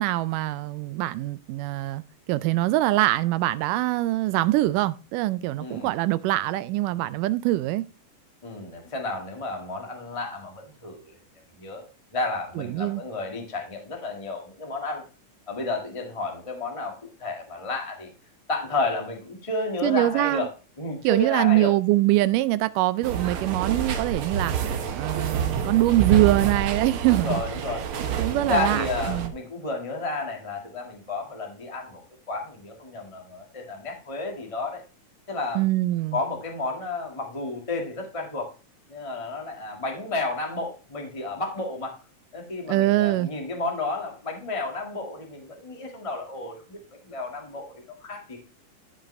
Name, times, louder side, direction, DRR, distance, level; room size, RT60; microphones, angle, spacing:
voice 1, 0.0-2.0 2.3-7.9 12.6-13.0 19.8-20.5 21.0-27.4 28.0-29.3 35.6-36.2 42.7-43.3, right 17 dB, 85° right, 2.1 m, -23 dB
voice 2, 5.6-5.9 8.4-11.2 11.6-11.9 12.1-15.1 15.5-18.1 18.5-20.5 20.8-21.7 23.1-23.3 27.2-27.9 28.3-32.0 32.3-34.8 35.3-35.6 36.1-38.5 38.9-41.9 42.3-46.8 47.0-48.4, left 3 dB, 20° left, 0.7 m, -31 dB
sound 1, 23.0-29.3, right 7 dB, 70° right, 1.2 m, -28 dB
13.5 x 5.2 x 3.2 m
omnidirectional pair, 3.7 m